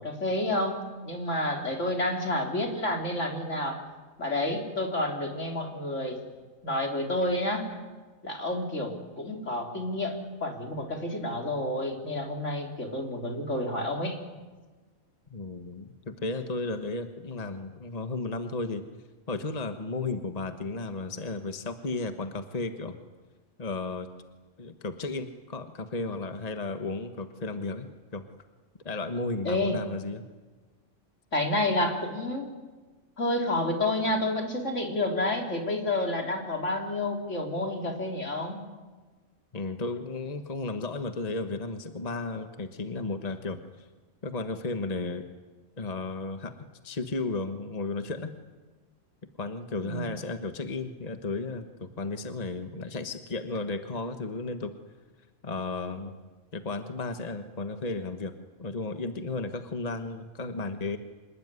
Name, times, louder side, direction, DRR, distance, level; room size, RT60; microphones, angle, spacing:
voice 1, 0.0-3.8 4.2-6.2 6.6-7.8 8.2-14.2 29.4-29.8 31.3-32.5 33.2-38.6 49.8-50.1, left 1 dB, 70° left, 2 dB, 4.1 m, -29 dB
voice 2, 15.3-18.8 19.3-23.0 23.6-24.1 24.6-28.2 28.8-30.2 39.5-43.9 44.2-45.2 45.8-46.5 46.8-48.3 49.4-54.7 55.4-56.2 56.5-58.3 58.6-61.0, left 3 dB, 30° left, 7 dB, 1.4 m, -34 dB
26.0 x 20.5 x 9.7 m, 1.3 s
omnidirectional pair, 1.3 m